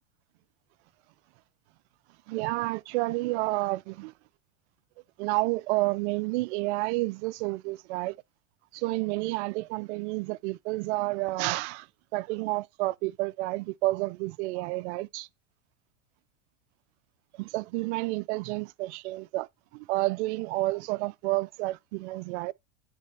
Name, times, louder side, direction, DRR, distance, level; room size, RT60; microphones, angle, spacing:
voice 1, 2.3-4.1 5.2-8.2 8.7-11.9 12.1-15.3 17.4-19.5 19.7-22.5, right 21 dB, 60° right, 0.5 m, -30 dB
8.7 x 3.4 x 5.3 m
supercardioid pair, 120°, 39 cm